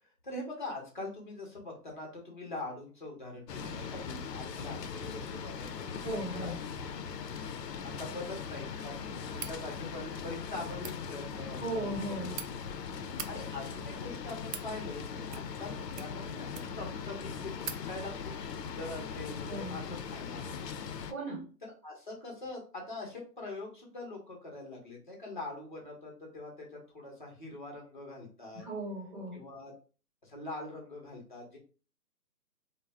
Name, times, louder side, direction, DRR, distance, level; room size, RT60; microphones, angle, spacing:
voice 1, 0.2-6.6 7.8-12.3 13.1-20.8 21.8-28.6 29.3-29.7 30.2-31.6, left 2 dB, 30° left, -1 dB, 0.7 m, -43 dB
sound 1, 3.5-21.1, left 6 dB, 85° left, 0.5 m, -40 dB
voice 2, 6.0-6.6 11.6-12.4 19.5-19.7 21.1-21.4 28.5-29.4, right 1 dB, 35° right, -5 dB, 1.1 m, -37 dB
sound 2, 9.3-9.6 10.7-11.0 11.9-12.5 13.0-13.3 14.1-14.7 15.3-15.6 15.9-16.9 17.2-17.3 17.6-17.8, right 8 dB, 75° right, 0.5 m, -42 dB
2.3 x 2.1 x 3.1 m, 0.37 s
hypercardioid pair, 165°, 48 cm